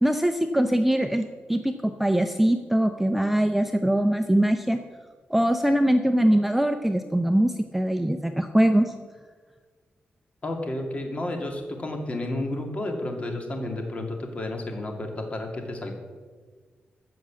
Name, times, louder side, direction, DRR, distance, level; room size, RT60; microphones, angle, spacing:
voice 1, 0.0-4.8 5.3-8.9, right 1 dB, 5° right, 7 dB, 0.6 m, -22 dB
voice 2, 10.4-15.9, left 1 dB, 35° left, 2 dB, 2.3 m, -31 dB
14.5 x 6.2 x 7.5 m, 1.5 s
wide cardioid pair, 120°, 4 cm